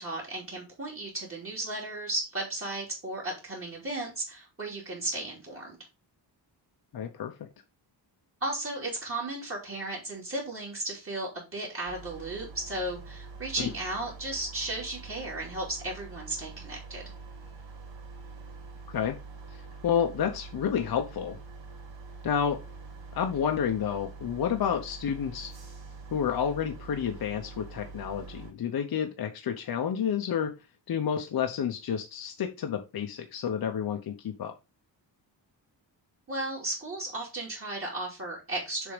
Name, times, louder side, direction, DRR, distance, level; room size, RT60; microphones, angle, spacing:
voice 1, 0.0-5.8 8.4-17.1 36.3-38.9, right 2 dB, 30° right, -4 dB, 2.8 m, -35 dB
voice 2, 6.9-7.3 13.6-13.7 18.9-19.2 19.8-21.4 22.2-22.6 23.1-25.5 26.1-30.5 30.9-34.5, left 8 dB, 55° left, 4 dB, 1.0 m, -30 dB
sound 1, 11.8-28.5, right 4 dB, 90° right, 2.7 m, -45 dB
6.9 x 3.8 x 5.1 m, 0.27 s
wide cardioid pair, 155°, 44 cm